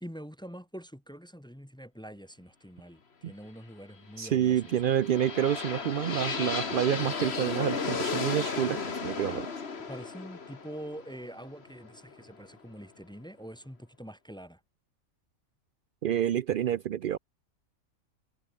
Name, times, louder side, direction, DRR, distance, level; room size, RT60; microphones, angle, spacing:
voice 1, 0.0-3.0 3.2-4.5 9.9-14.6, equal, 5° left, 0.9 m, -44 dB
voice 2, 4.2-9.5 16.0-17.2, right 10 dB, 85° right, 0.4 m, -28 dB
sound 1, 4.5-12.4, left 5 dB, 45° left, 1.9 m, -35 dB
omnidirectional pair, 1.5 m